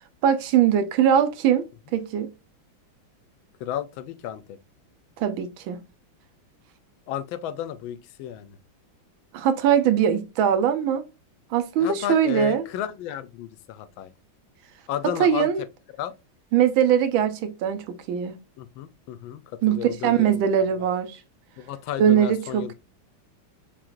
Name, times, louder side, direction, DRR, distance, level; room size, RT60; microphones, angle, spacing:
voice 1, 0.2-1.7 1.9-2.3 5.2-5.8 9.3-11.0 11.5-12.6 15.2-15.6 16.5-18.4 19.6-21.2 22.0-22.7, right 9 dB, 85° right, 1.5 m, -21 dB
voice 2, 3.6-4.6 7.1-8.6 11.8-14.1 14.9-15.5 16.0-16.1 18.6-20.9 21.6-22.7, left 10 dB, 80° left, 1.3 m, -33 dB
4.8 x 3.6 x 2.5 m
omnidirectional pair, 2.1 m